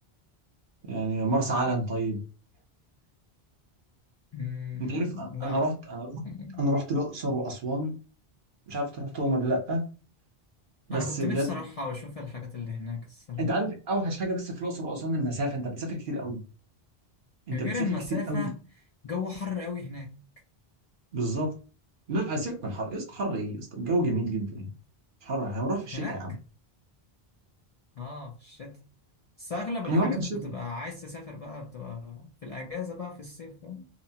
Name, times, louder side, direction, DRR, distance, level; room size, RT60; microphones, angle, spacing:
voice 1, 0.8-2.2 4.9-6.2 6.6-7.9 8.7-9.9 10.9-11.6 13.4-16.4 17.5-17.7 18.1-18.4 21.1-21.5 22.1-24.7 25.2-26.3 29.9-30.5, right 1 dB, 55° right, 0.9 m, -29 dB
voice 2, 4.3-5.7 6.2-6.6 10.9-13.5 17.5-18.5 19.0-20.1 25.9-26.2 28.0-28.8 29.4-33.9, left 4 dB, 50° left, 0.5 m, -36 dB
2.8 x 2.1 x 2.7 m
omnidirectional pair, 1.1 m